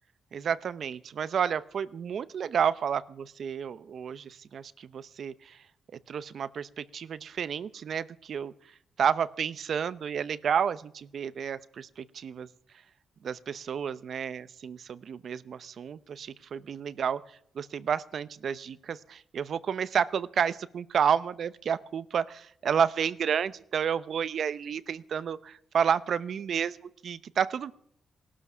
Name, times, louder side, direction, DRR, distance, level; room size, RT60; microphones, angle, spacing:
voice 1, 0.3-5.6 6.1-8.5 9.0-12.5 13.2-17.2 17.5-26.8 27.0-27.7, right 7 dB, 65° right, 16 dB, 0.7 m, -30 dB
18.5 x 12.5 x 6.1 m, 0.71 s
cardioid pair, 90°, 0 cm